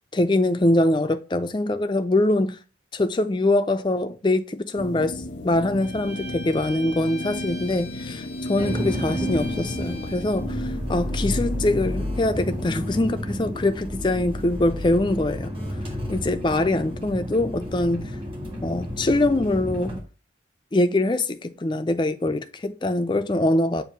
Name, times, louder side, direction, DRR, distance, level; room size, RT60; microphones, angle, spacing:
voice 1, 0.1-2.6 2.9-5.1 5.4-15.5 16.1-18.1 18.6-20.0 20.7-23.8, left 2 dB, 25° left, 0.4 m, -23 dB
sound 1, 4.8-14.2, left 1 dB, 85° left, 0.9 m, -35 dB
Bowed string instrument, 5.8-10.4, left 2 dB, 65° right, 3.0 m, -41 dB
sound 2, 8.6-20.0, left 1 dB, 30° right, 1.5 m, -31 dB
7.3 x 2.6 x 5.1 m
head